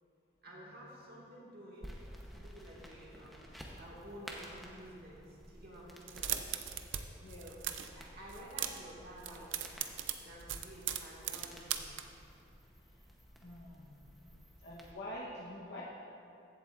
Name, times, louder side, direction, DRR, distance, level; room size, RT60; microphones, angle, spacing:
voice 1, 0.4-2.0 2.3-6.4 7.4-7.6 7.9-9.7 10.1-11.9, right 1 dB, 50° right, -5 dB, 1.8 m, -52 dB
sound 1, 1.8-14.9, equal, ahead, 0.7 m, -53 dB
sound 2, 6.0-7.0 7.3-7.9 8.3-8.9 9.2-12.0, right 11 dB, 80° right, 0.5 m, -38 dB
voice 2, 7.2-7.5 13.4-14.2 14.6-15.8, left 1 dB, 55° left, -6 dB, 0.9 m, -46 dB
15.5 x 7.6 x 2.4 m, 2.7 s
head